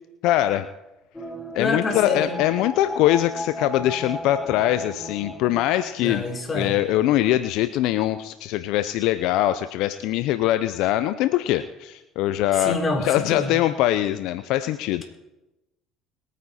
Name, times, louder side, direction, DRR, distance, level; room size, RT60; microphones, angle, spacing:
voice 1, 0.2-0.7 1.5-6.2 6.5-12.7 13.0-15.0, left 14 dB, 70° left, 12 dB, 0.5 m, -22 dB
sound 1, 1.1-7.1 7.4-7.5, equal, 15° left, 1.9 m, -36 dB
voice 2, 1.6-2.3 6.0-6.8 12.5-13.5, left 3 dB, 30° left, 2 dB, 3.8 m, -27 dB
22.0 x 9.3 x 4.2 m, 0.99 s
supercardioid pair, 75°, 0 cm